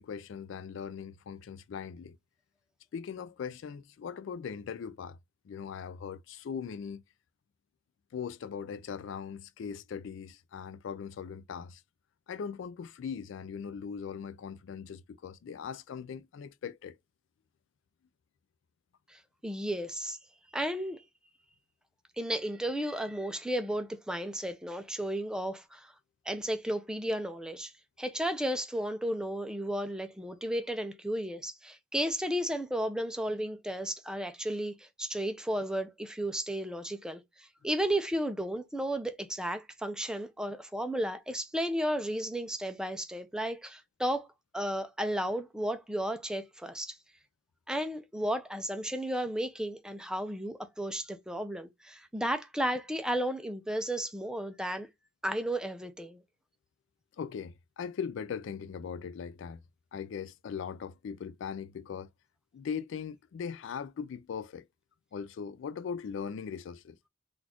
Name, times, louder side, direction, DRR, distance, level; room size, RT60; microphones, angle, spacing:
voice 1, 0.0-2.2 2.9-5.2 5.5-7.0 8.1-11.8 12.3-17.0 57.2-59.6 59.9-62.1 62.5-64.7 65.1-67.0, left 6 dB, 65° left, 0.3 m, -40 dB
voice 2, 19.1-20.2 20.5-21.0 22.2-25.9 26.3-27.7 28.0-44.3 44.5-47.0 47.7-54.9 55.2-56.2, right 1 dB, 5° right, 0.4 m, -33 dB
4.0 x 2.4 x 2.8 m
head